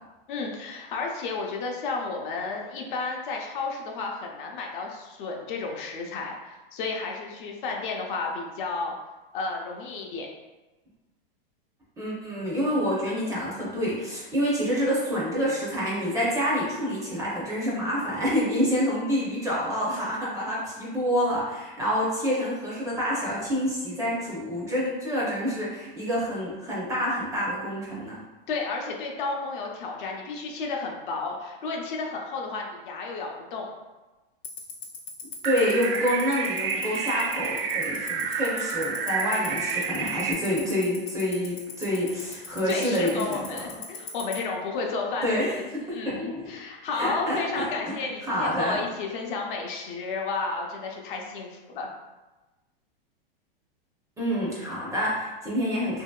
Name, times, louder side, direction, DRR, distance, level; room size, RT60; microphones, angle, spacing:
voice 1, 0.3-8.9 9.3-10.3 28.5-33.7 42.7-51.9, left 4 dB, 60° left, 0 dB, 0.6 m, -32 dB
voice 2, 12.0-28.2 35.4-43.7 45.2-46.5 46.9-47.9 48.2-48.8 54.2-56.0, equal, 10° right, -6 dB, 0.5 m, -27 dB
Tick-tock, 34.4-44.3, left 9 dB, 85° left, 0.8 m, -36 dB
sound 1, 35.4-40.3, right 6 dB, 65° right, 0.4 m, -30 dB
2.8 x 2.7 x 2.2 m, 1.1 s
supercardioid pair, 140°, 29 cm